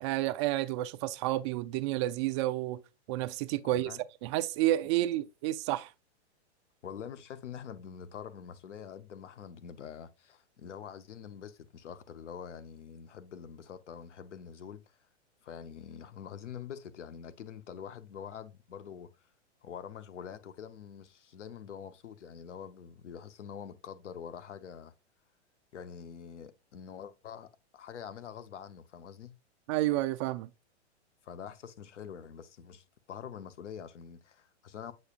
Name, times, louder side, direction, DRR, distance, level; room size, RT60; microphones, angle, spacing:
voice 1, 0.0-2.8 3.1-3.9 4.2-5.9 29.7-30.5, right 15 dB, 25° right, 0.3 m, -30 dB
voice 2, 3.7-4.0 6.8-15.0 15.4-19.1 19.6-24.9 25.7-29.4 31.2-34.9, left 8 dB, 85° left, 0.9 m, -45 dB
8.0 x 5.3 x 2.4 m
hypercardioid pair, 135°, 35 cm